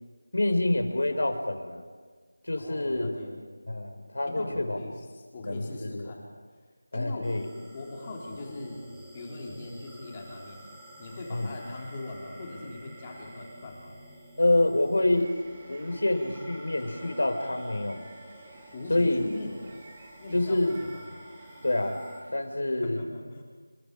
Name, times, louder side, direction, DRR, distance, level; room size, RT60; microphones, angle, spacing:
voice 1, 0.3-1.9 2.4-3.1 3.7-4.8 5.4-6.1 6.9-7.5 11.3-11.5 14.4-15.3 15.7-18.0 18.9-19.2 20.3-20.7 21.6-22.0 22.3-23.0, left 2 dB, 75° left, 5 dB, 4.9 m, -27 dB
voice 2, 2.6-3.4 4.3-6.3 6.9-7.3 7.7-8.8 9.1-10.6 11.0-13.9 18.7-19.5 20.2-21.0 22.8-23.4, left 2 dB, 20° left, -2 dB, 3.8 m, -40 dB
sound 1, 7.2-22.2, right 1 dB, 5° right, 1.9 m, -50 dB
sound 2, 14.9-22.5, right 2 dB, 25° right, 4.1 m, -52 dB
29.0 x 26.0 x 5.0 m, 1.5 s
figure-of-eight pair, 175°, 0 cm